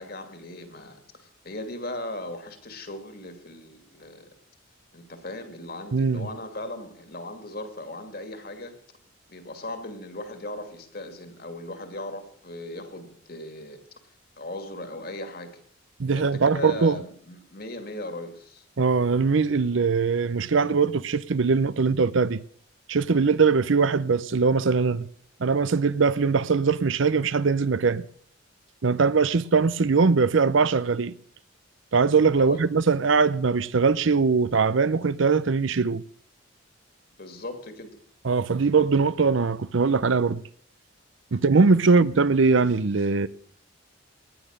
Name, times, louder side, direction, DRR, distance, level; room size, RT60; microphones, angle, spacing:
voice 1, 0.0-4.3 4.9-8.7 9.3-13.8 14.4-15.5 16.0-18.7 32.3-32.6 37.2-37.9, left 1 dB, 50° left, 2.4 m, -38 dB
voice 2, 5.9-6.3 16.0-17.0 18.8-22.4 22.9-25.1 25.4-28.0 28.8-31.1 31.9-36.0 38.2-40.4 41.3-43.3, right 4 dB, 70° right, 0.6 m, -21 dB
18.0 x 11.0 x 6.5 m
head